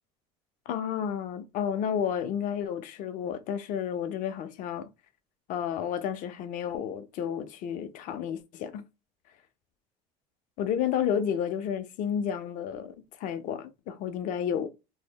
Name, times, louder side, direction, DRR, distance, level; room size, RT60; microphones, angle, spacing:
voice 1, 0.7-4.9 5.5-8.8 10.6-14.7, left 8 dB, 55° left, 0.4 m, -31 dB
2.0 x 2.0 x 3.4 m
supercardioid pair, 110°, 16 cm